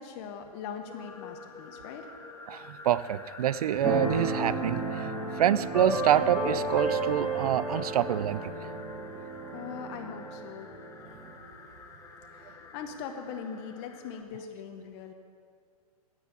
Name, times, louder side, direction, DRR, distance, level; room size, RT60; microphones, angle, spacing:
voice 1, 0.0-2.1 9.5-10.7 12.3-15.1, left 7 dB, 40° left, 5 dB, 1.0 m, -41 dB
sound 1, 0.9-14.2, left 4 dB, 15° left, 0.8 m, -48 dB
voice 2, 2.5-8.7, right 10 dB, 70° right, 17 dB, 0.5 m, -27 dB
Keyboard (musical), 3.8-11.3, right 2 dB, 10° right, 2.0 m, -33 dB
sound 2, 5.1-5.3 5.8-11.0, left 9 dB, 75° left, 1.1 m, -48 dB
9.7 x 7.5 x 8.4 m, 2.2 s
hypercardioid pair, 125°, 20 cm